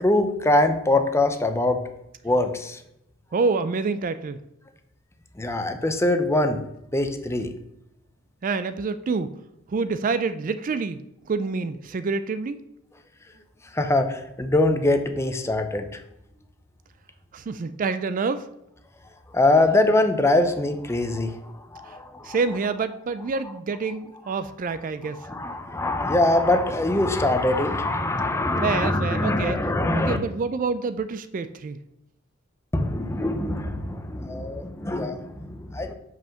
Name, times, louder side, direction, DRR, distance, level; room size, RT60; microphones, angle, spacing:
voice 1, 0.0-1.8 2.2-2.8 5.4-6.6 6.9-7.5 13.7-16.0 19.3-22.4 25.2-30.2 32.7-35.9, left 2 dB, 15° left, 7 dB, 0.6 m, -23 dB
voice 2, 3.3-4.4 8.4-9.3 9.7-12.6 17.3-18.5 21.8-22.0 22.2-25.3 28.6-29.6 29.9-31.8, right 4 dB, 40° right, 12 dB, 0.3 m, -27 dB
5.6 x 5.2 x 6.3 m, 0.80 s
head